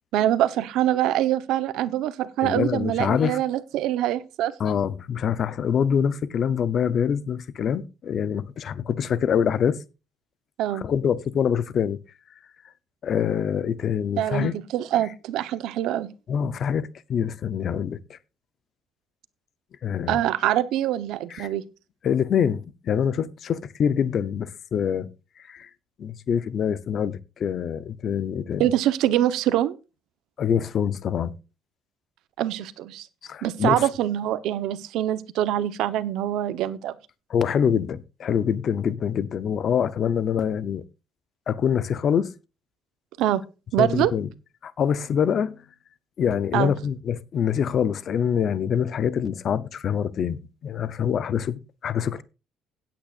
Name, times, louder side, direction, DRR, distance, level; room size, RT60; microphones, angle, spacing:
voice 1, 0.1-4.5 10.6-10.8 14.2-16.1 20.1-21.6 28.6-29.8 32.4-33.1 33.4-36.9 43.2-43.4 43.7-44.1 46.5-46.7, right 12 dB, 70° right, 0.9 m, -24 dB
voice 2, 2.4-3.4 4.6-9.8 10.7-12.0 13.0-14.5 16.3-18.2 19.8-20.2 21.3-21.5 22.0-25.1 25.5-25.7 26.0-28.7 30.4-31.3 33.2-33.9 37.3-40.8 41.5-42.3 43.8-44.3 44.6-45.6 46.2-52.2, left 8 dB, 40° left, 0.7 m, -25 dB
17.0 x 9.0 x 2.5 m
cardioid pair, 175°, 0 cm